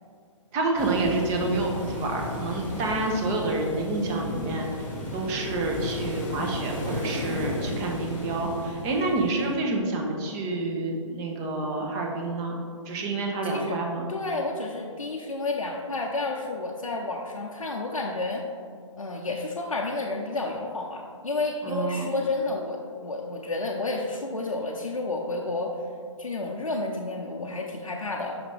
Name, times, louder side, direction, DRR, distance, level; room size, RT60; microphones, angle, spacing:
voice 1, 0.5-4.7 5.1-12.6 12.9-14.1 21.6-22.1, right 2 dB, 20° right, 1 dB, 0.7 m, -28 dB
sound 1, 0.8-9.6, left 1 dB, 10° left, 1.3 m, -34 dB
voice 2, 13.4-13.8 14.1-18.4 19.0-25.8 26.2-28.4, left 2 dB, 90° left, -1 dB, 0.6 m, -31 dB
5.9 x 5.5 x 3.4 m, 2.3 s
figure-of-eight pair, 135°, 17 cm